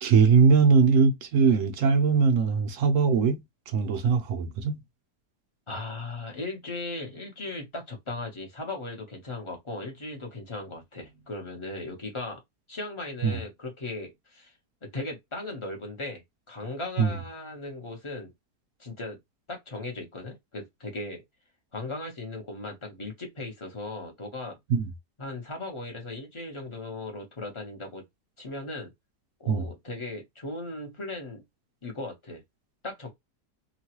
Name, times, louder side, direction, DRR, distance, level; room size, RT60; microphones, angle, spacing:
voice 1, 0.0-4.8 13.2-13.4 17.0-17.1 24.7-24.9 29.5-29.7, right 5 dB, 70° right, 0.8 m, -21 dB
voice 2, 5.7-12.4 12.7-14.5 14.8-16.2 16.5-18.3 18.8-19.2 19.5-21.2 21.7-24.6 25.2-28.0 28.4-28.9 29.4-31.4 31.8-32.4 32.8-33.1, left 2 dB, 25° left, 0.7 m, -37 dB
3.0 x 2.2 x 2.9 m
omnidirectional pair, 1.7 m